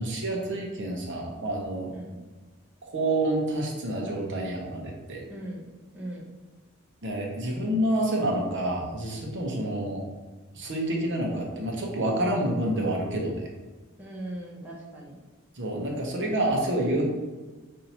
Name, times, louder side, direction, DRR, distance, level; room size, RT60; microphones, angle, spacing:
voice 1, 0.0-1.9 2.8-5.2 7.0-10.0 10.5-13.5 15.5-17.0, right 1 dB, 55° right, -1 dB, 0.9 m, -28 dB
voice 2, 1.9-2.2 5.3-5.6 5.9-6.3 14.0-15.2, right 1 dB, 10° right, -4 dB, 0.8 m, -39 dB
5.3 x 2.7 x 2.9 m, 1.3 s
head